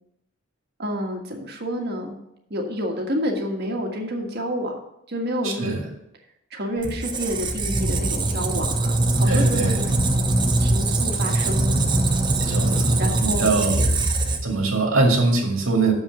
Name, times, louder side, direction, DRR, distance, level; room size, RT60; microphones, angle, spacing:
voice 1, 0.8-2.2 2.5-4.8 5.1-5.7 6.5-9.9 10.6-11.8 12.5-12.6 13.0-13.5, equal, 50° right, 2 dB, 1.6 m, -29 dB
voice 2, 5.4-5.8 9.3-9.8 12.4-13.9 14.4-15.9, right 3 dB, 85° right, 1 dB, 2.2 m, -22 dB
Squeak, 6.8-14.7, right 2 dB, 20° right, 0.7 m, -22 dB
7.0 x 5.7 x 7.4 m, 0.79 s
head